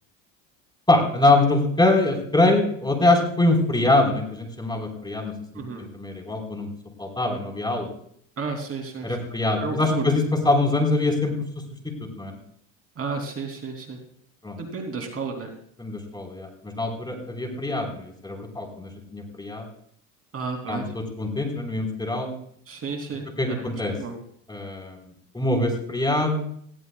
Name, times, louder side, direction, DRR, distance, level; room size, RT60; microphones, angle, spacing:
voice 1, 0.9-5.3 5.8-6.7 7.0-7.9 9.0-11.3 12.2-12.4 14.4-14.6 15.8-19.7 20.7-22.3 23.4-23.9 24.5-25.0 25.3-26.4, left 2 dB, 10° left, 1 dB, 4.5 m, -23 dB
voice 2, 8.4-9.3 9.6-10.1 13.0-14.0 14.6-15.5 20.3-20.9 22.7-24.1, right 4 dB, 35° right, 3 dB, 3.1 m, -32 dB
19.5 x 16.0 x 2.4 m, 0.65 s
supercardioid pair, 90°, 39 cm